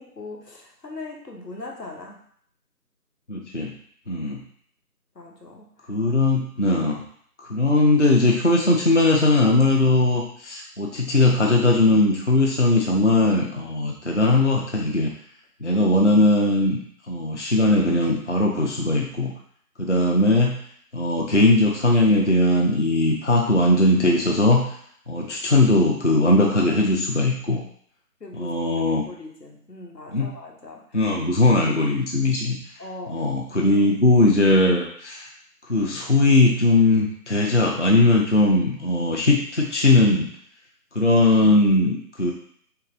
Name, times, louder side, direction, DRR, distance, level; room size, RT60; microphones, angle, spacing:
voice 1, 0.0-2.2 5.1-5.9 28.2-28.6 29.1-31.0 32.8-33.9 37.3-37.5, left 2 dB, 85° left, 0 dB, 1.2 m, -40 dB
voice 2, 3.3-3.7 4.1-4.4 5.9-7.0 7.4-15.1 15.6-16.8 17.1-19.3 19.8-20.6 20.9-24.6 25.1-27.6 28.4-29.1 30.1-30.3 30.9-32.6 33.1-35.3 35.7-40.3 40.9-42.3, left 2 dB, 50° left, -1 dB, 0.5 m, -19 dB
3.3 x 2.9 x 3.7 m, 0.63 s
figure-of-eight pair, 170°, 48 cm